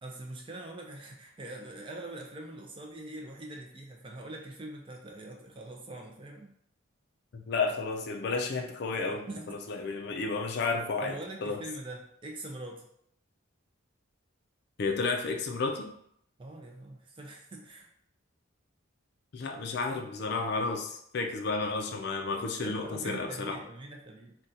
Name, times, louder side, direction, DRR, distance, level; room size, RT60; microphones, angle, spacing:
voice 1, 0.0-6.5 9.1-9.6 11.0-12.9 16.4-17.9 22.6-24.4, right 2 dB, 25° right, 1 dB, 0.3 m, -43 dB
voice 2, 7.3-11.1 11.4-11.6 14.8-15.9 19.3-23.6, left 4 dB, 50° left, 4 dB, 0.4 m, -32 dB
2.7 x 2.2 x 3.7 m, 0.70 s
head